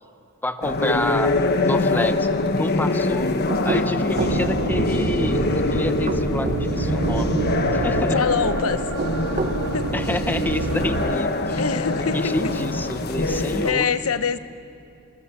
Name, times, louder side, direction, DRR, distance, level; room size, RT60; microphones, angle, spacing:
voice 1, 0.4-2.3 2.6-3.3 3.6-7.4 7.7-8.2 9.9-11.6 11.9-13.9, left 1 dB, 10° left, 9 dB, 0.9 m, -28 dB
sound 1, 0.6-13.7, left 2 dB, 50° left, 1.4 m, -24 dB
voice 2, 3.5-3.9 8.1-8.9 9.7-9.9 11.5-12.3 13.2-14.4, left 6 dB, 75° left, 11 dB, 0.9 m, -25 dB
sound 2, 3.5-4.4 5.9-6.7 8.8-9.6, right 3 dB, 35° right, 1.0 m, -28 dB
sound 3, 4.2-11.2, right 3 dB, 75° right, 0.7 m, -28 dB
26.0 x 20.5 x 7.4 m, 2.7 s
head